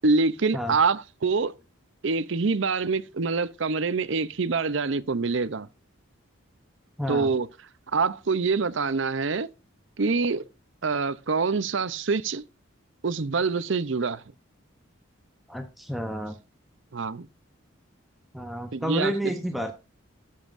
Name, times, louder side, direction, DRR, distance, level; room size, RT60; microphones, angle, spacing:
voice 1, 0.0-1.5 2.0-5.7 7.1-7.5 7.9-9.5 10.0-10.4 10.8-12.4 13.0-14.2 16.9-17.3 18.7-19.3, right 4 dB, 65° right, 0.7 m, -25 dB
voice 2, 7.0-7.3 15.5-16.4 18.3-19.7, equal, ahead, 0.8 m, -30 dB
13.5 x 7.5 x 2.6 m
head